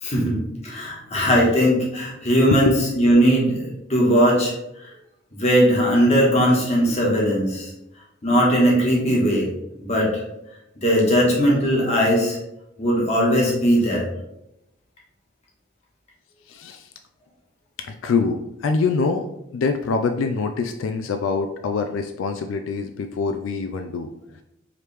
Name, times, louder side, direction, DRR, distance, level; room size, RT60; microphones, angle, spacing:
voice 1, 0.0-4.5 4.8-4.9 5.4-7.7 8.2-9.5 9.8-10.2 10.8-12.4 12.8-14.0, equal, 35° left, -4 dB, 1.3 m, -19 dB
voice 2, 16.5-16.9 17.8-19.3 19.5-24.1, left 4 dB, 90° left, 6 dB, 0.3 m, -24 dB
4.8 x 3.0 x 3.3 m, 0.85 s
head